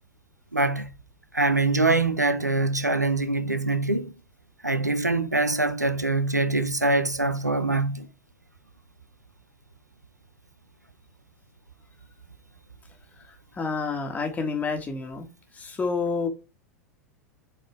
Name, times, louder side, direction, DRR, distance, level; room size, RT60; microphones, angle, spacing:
voice 1, 0.5-0.9 1.3-4.1 4.6-8.1, right 2 dB, 90° right, 0.7 m, -24 dB
voice 2, 13.6-15.3 15.5-16.3, left 4 dB, 15° left, 1.8 m, -28 dB
7.3 x 4.2 x 3.5 m
figure-of-eight pair, 90°, 9 cm